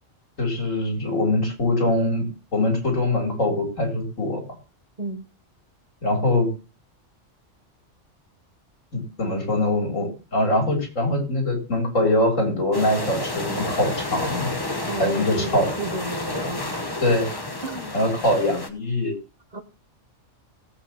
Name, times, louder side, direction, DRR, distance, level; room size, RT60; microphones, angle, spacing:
voice 1, 0.4-4.4 6.0-6.5 8.9-14.5 15.0-15.7 17.0-17.3 17.9-19.1, left 1 dB, 90° left, 1 dB, 3.7 m, -23 dB
sound 1, 12.7-18.7, left 2 dB, 20° left, 1.1 m, -30 dB
voice 2, 14.9-16.8 17.6-18.0 19.5-19.6, right 2 dB, 35° right, 8 dB, 1.2 m, -32 dB
17.5 x 8.2 x 3.0 m, 0.31 s
omnidirectional pair, 1.3 m